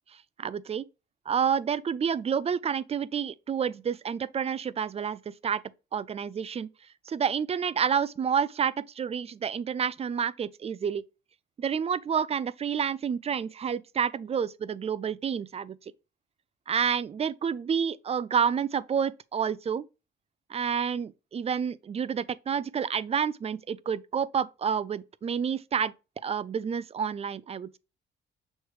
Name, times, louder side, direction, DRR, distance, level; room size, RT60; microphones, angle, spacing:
voice 1, 0.4-0.9 1.3-5.6 5.9-6.7 7.1-11.0 11.6-15.8 16.7-19.9 20.5-25.9 26.2-27.7, right 7 dB, 30° right, 0.4 m, -29 dB
6.3 x 4.6 x 3.3 m
cardioid pair, 90°, 20 cm